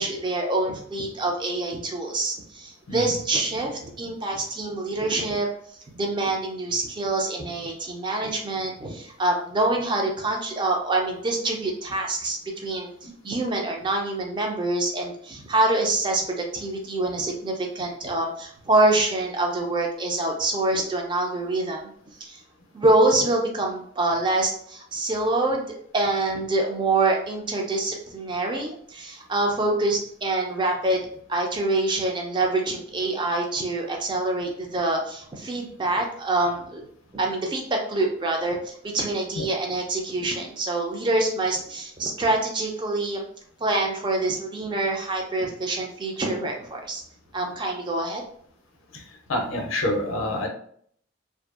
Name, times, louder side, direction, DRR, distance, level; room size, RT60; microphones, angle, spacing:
voice 1, 0.0-5.5 5.9-12.9 13.2-21.9 22.2-22.4 22.7-31.0 31.3-36.8 37.1-43.2 43.6-47.0 47.3-48.2, right 2 dB, 25° right, 1 dB, 0.4 m, -25 dB
voice 2, 2.9-3.2 39.4-39.5 48.9-49.0 49.3-50.5, left 1 dB, 85° left, 3 dB, 0.5 m, -27 dB
2.6 x 2.2 x 2.3 m, 0.63 s
head